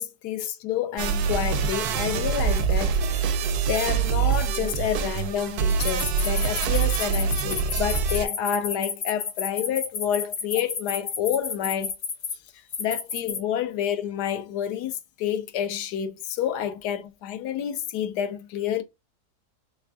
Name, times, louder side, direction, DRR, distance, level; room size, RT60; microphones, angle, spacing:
voice 1, 0.0-3.4 3.7-11.9 12.8-18.8, left 9 dB, 85° left, 1.2 m, -29 dB
sound 1, 1.0-8.3, right 6 dB, 75° right, 1.1 m, -25 dB
sound 2, 5.7-12.3 12.7-13.4, left 6 dB, 55° left, 0.9 m, -31 dB
3.5 x 3.3 x 2.2 m
omnidirectional pair, 1.7 m